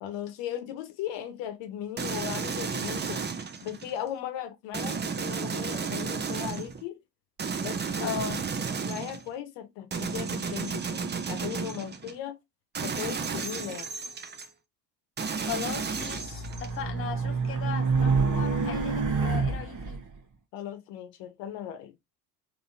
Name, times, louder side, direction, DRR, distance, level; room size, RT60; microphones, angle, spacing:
voice 1, 0.0-3.3 3.6-7.0 7.6-8.1 8.5-12.4 12.8-13.9 20.5-21.9, left 10 dB, 60° left, 1.0 m, -37 dB
sound 1, 2.0-4.0 4.7-6.8 7.4-9.3 9.9-12.1 12.8-14.5 15.2-16.8, right 5 dB, 20° right, 0.6 m, -33 dB
voice 2, 8.0-8.4 15.5-20.0, left 7 dB, 25° left, 0.7 m, -37 dB
Race car auto racing, 15.8-20.0, right 4 dB, 40° right, 1.0 m, -27 dB
3.8 x 2.9 x 2.6 m
hypercardioid pair, 75°, 49 cm